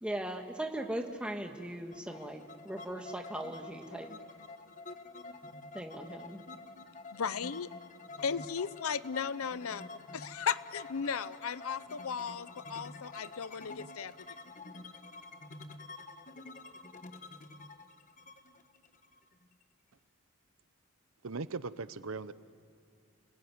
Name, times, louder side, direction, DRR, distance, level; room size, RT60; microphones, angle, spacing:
voice 1, 0.0-4.1 5.7-6.4, right 1 dB, 5° right, 1.6 m, -39 dB
sound 1, 1.9-19.6, left 3 dB, 35° left, 1.0 m, -48 dB
voice 2, 7.1-7.7 8.2-14.1, left 6 dB, 80° left, 0.6 m, -36 dB
voice 3, 21.2-22.3, right 4 dB, 75° right, 0.8 m, -38 dB
28.5 x 21.0 x 9.4 m
head